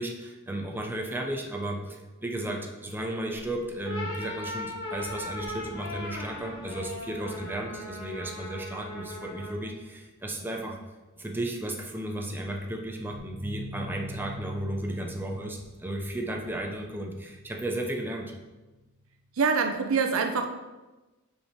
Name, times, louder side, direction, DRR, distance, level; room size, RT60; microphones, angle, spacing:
voice 1, 0.0-10.8 11.2-18.3, right 1 dB, 10° right, 1 dB, 0.6 m, -34 dB
sound 1, 3.3-10.1 11.8-11.9 12.4-19.5, equal, 45° right, 1.1 m, -48 dB
sound 2, 3.7-9.7, left 1 dB, 70° left, 1.6 m, -38 dB
voice 2, 19.3-20.5, right 5 dB, 70° right, 5 dB, 0.6 m, -25 dB
5.7 x 4.9 x 4.5 m, 1.1 s
head